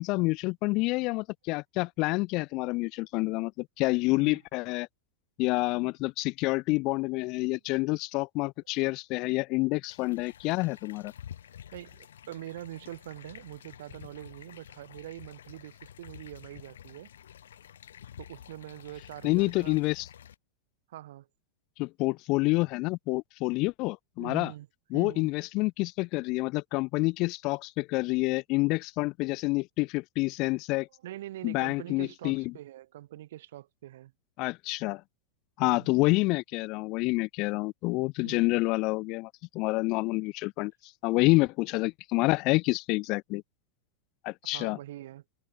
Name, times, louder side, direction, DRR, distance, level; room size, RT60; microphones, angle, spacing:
voice 1, 0.0-4.9 5.4-11.1 19.2-20.1 21.8-24.5 24.9-30.9 31.4-32.4 34.4-35.0 35.6-43.4 44.2-44.8, left 24 dB, 40° left, 0.3 m, -28 dB
voice 2, 4.1-4.4 11.7-17.1 18.2-19.8 20.9-21.3 24.2-24.7 24.9-25.3 31.0-34.1 35.6-35.9 38.2-38.6 44.5-45.2, right 14 dB, 55° right, 5.1 m, -44 dB
sound 1, 9.9-20.4, left 10 dB, 65° left, 4.0 m, -50 dB
figure-of-eight pair, 90°, 0 cm